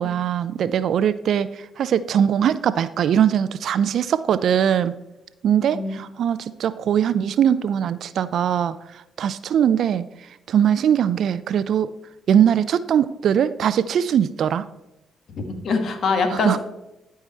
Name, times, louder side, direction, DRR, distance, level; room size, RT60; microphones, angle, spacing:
voice 1, 0.0-1.5 1.8-4.9 5.4-8.7 9.2-10.0 10.5-11.9 12.3-14.7 16.3-16.6, right 9 dB, 65° right, 15 dB, 0.3 m, -21 dB
voice 2, 15.3-16.6, left 4 dB, 65° left, 6 dB, 1.4 m, -24 dB
12.0 x 4.7 x 4.3 m, 0.94 s
supercardioid pair, 55°, 0 cm